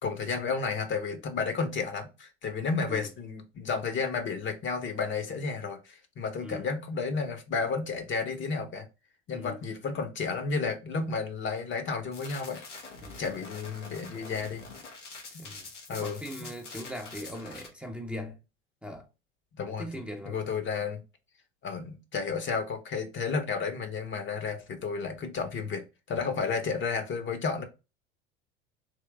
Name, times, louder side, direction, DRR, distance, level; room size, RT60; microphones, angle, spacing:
voice 1, 0.0-8.9 9.3-12.6 13.2-14.6 15.3-15.4 15.9-16.5 19.6-19.9 20.3-21.0 21.6-27.6, left 5 dB, 35° left, 1.0 m, -32 dB
sound 1, 12.1-17.7, left 4 dB, 80° left, 1.2 m, -45 dB
voice 2, 13.0-13.4 15.4-18.4 18.8-19.1 19.7-20.4, left 1 dB, 5° right, 0.8 m, -40 dB
3.7 x 3.1 x 3.3 m
figure-of-eight pair, 75°, 35 cm